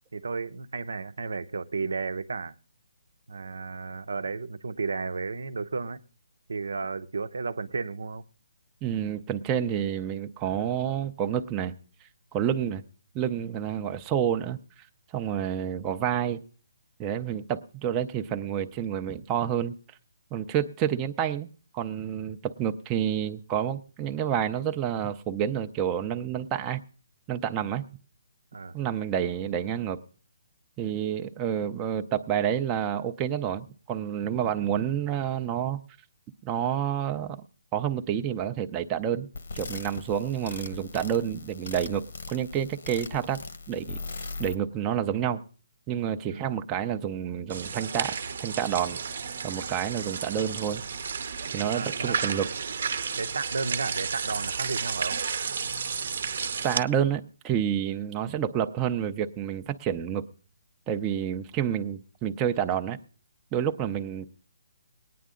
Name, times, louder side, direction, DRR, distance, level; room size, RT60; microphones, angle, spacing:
voice 1, 0.1-2.5 3.3-6.0 6.5-8.2 28.5-28.8 46.3-46.6 51.7-52.4 53.2-55.2, right 4 dB, 85° right, 0.8 m, -33 dB
voice 2, 8.8-11.7 12.3-12.8 13.1-14.6 15.1-16.4 17.0-19.8 20.3-21.5 21.7-26.8 27.3-27.8 28.7-30.0 30.8-35.8 36.4-37.4 37.7-39.3 39.5-43.4 43.7-44.0 44.4-45.4 45.9-49.0 49.4-50.8 51.5-52.5 56.6-60.2 60.9-63.0 63.5-64.3, right 9 dB, 15° right, 0.5 m, -29 dB
sound 1, 39.3-44.5, left 3 dB, 65° left, 1.1 m, -39 dB
sound 2, 47.5-56.8, right 6 dB, 55° right, 0.8 m, -32 dB
20.0 x 9.4 x 3.7 m
hypercardioid pair, 170°, 0 cm